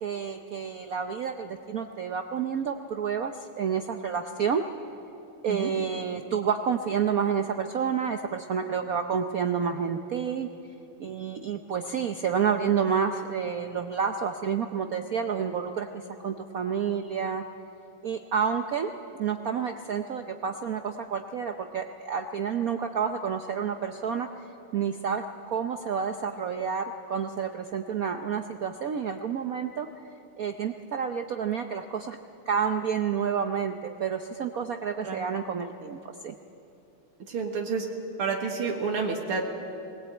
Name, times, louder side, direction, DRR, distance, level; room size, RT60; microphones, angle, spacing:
voice 1, 0.0-4.6 5.4-10.5 11.0-17.4 18.0-18.9 19.2-24.3 24.7-29.9 30.4-32.2 32.5-36.3, right 7 dB, 65° right, 6 dB, 0.9 m, -29 dB
voice 2, 37.3-37.9 38.2-39.6, right 5 dB, 80° right, 2 dB, 2.5 m, -29 dB
20.0 x 19.0 x 8.9 m, 2.9 s
omnidirectional pair, 2.4 m